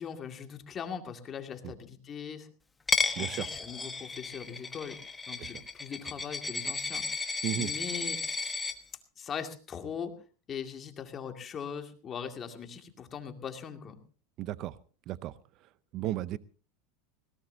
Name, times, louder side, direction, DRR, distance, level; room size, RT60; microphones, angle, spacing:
voice 1, 0.0-2.5 3.0-5.0 5.3-7.0 7.5-8.6 9.2-10.1 10.5-14.0, left 7 dB, 30° left, 5 dB, 2.3 m, -40 dB
Coin (dropping), 2.9-8.7, left 4 dB, 15° left, 1.1 m, -33 dB
voice 2, 3.2-3.5 5.4-5.5 7.4-7.7 14.4-14.8 15.1-15.4 15.9-16.4, right 14 dB, 50° right, 17 dB, 0.6 m, -34 dB
20.0 x 17.5 x 2.8 m, 0.38 s
supercardioid pair, 125°, 0 cm